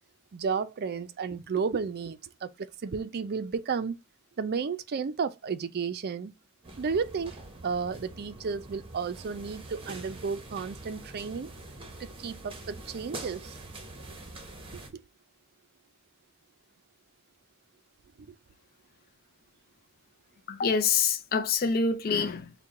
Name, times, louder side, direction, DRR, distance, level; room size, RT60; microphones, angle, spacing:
voice 1, 0.3-4.0 4.4-6.3 6.8-7.3 7.6-11.5 12.0-13.5 14.7-15.0 18.3-18.4, right 5 dB, 50° right, 0.4 m, -33 dB
sound 1, 6.6-14.9, right 2 dB, 25° right, 0.9 m, -45 dB
voice 2, 20.5-22.5, left 5 dB, 45° left, 0.4 m, -26 dB
4.5 x 2.2 x 3.5 m
head